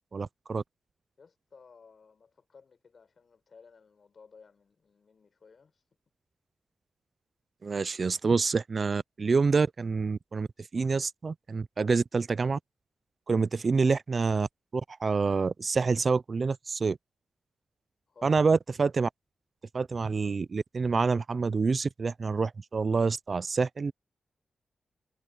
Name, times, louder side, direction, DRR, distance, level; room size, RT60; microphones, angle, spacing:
voice 1, 0.1-0.6 7.6-10.5 10.7-12.6 13.3-14.5 14.7-17.0 18.2-19.1 19.7-23.9, right 4 dB, 40° right, 0.4 m, -27 dB
voice 2, 1.2-5.8 18.1-18.4, left 5 dB, 50° left, 4.5 m, -56 dB
wide cardioid pair, 115°, 0 cm